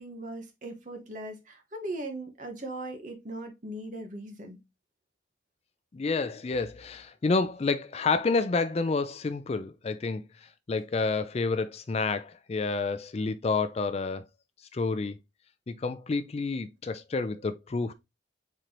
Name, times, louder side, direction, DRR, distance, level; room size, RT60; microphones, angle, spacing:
voice 1, 0.0-4.6, right 1 dB, 45° right, 1.2 m, -39 dB
voice 2, 5.9-14.2 14.7-15.2 15.7-17.9, left 4 dB, 35° left, 0.3 m, -29 dB
4.3 x 3.8 x 3.0 m
head